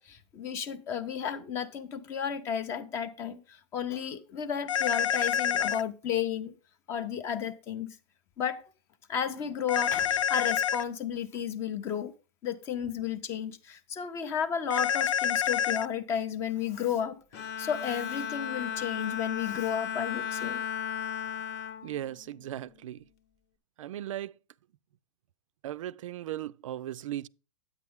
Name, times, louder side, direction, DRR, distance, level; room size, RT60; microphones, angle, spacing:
voice 1, 0.0-6.5 6.9-8.0 8.4-8.7 9.1-12.1 12.4-20.6, left 8 dB, 15° left, 0.4 m, -33 dB
sound 1, 4.7-5.8 9.7-10.8 14.7-15.9, left 9 dB, 80° left, 0.5 m, -27 dB
Bowed string instrument, 17.3-22.9, left 8 dB, 30° left, 0.8 m, -36 dB
voice 2, 21.8-23.0 23.8-24.3 25.6-27.3, right 12 dB, 85° right, 0.5 m, -37 dB
9.6 x 8.5 x 3.5 m
supercardioid pair, 175°, 16 cm